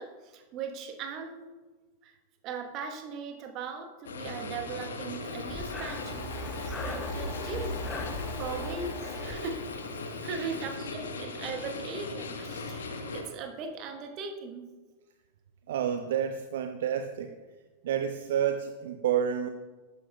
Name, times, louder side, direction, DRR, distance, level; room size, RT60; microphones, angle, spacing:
voice 1, 0.0-1.4 2.0-2.2 2.4-6.3 6.6-7.8 8.4-9.7 10.2-14.7, right 5 dB, 35° right, 1.1 m, -39 dB
sound 1, 4.0-13.2, left 3 dB, 65° left, 1.2 m, -38 dB
Breathing, 5.4-10.3, left 1 dB, 15° left, 0.9 m, -39 dB
voice 2, 15.7-17.4 17.8-19.5, right 9 dB, 60° right, 0.5 m, -29 dB
12.0 x 9.1 x 2.3 m
figure-of-eight pair, 90°, 0 cm